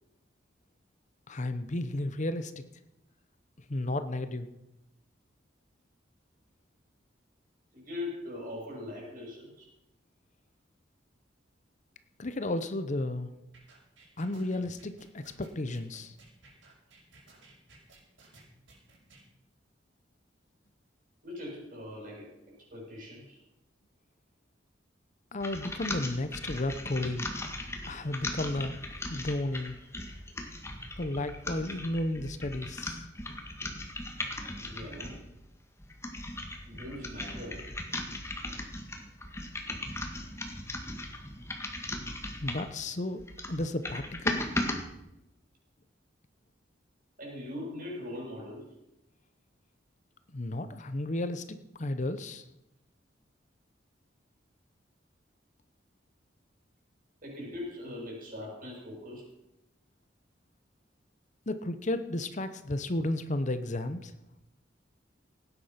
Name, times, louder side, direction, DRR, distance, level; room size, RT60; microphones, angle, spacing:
voice 1, 1.3-2.6 3.7-4.5 12.2-13.3 14.2-16.1 25.3-27.3 27.9-28.8 29.1-29.8 31.0-33.1 42.4-43.2 43.5-44.4 50.3-52.4 61.5-64.1, left 1 dB, 40° left, 11 dB, 0.9 m, -33 dB
voice 2, 7.7-9.7 21.2-23.4 34.6-35.3 36.6-37.7 47.2-48.8 57.2-59.3, left 1 dB, 50° right, -2 dB, 6.7 m, -41 dB
sound 1, 13.5-19.2, right 2 dB, 85° right, 6.2 m, -57 dB
sound 2, 25.4-35.3 35.8-42.8 43.2-44.8, left 1 dB, 15° left, 1.8 m, -38 dB
17.5 x 9.8 x 5.8 m, 0.88 s
head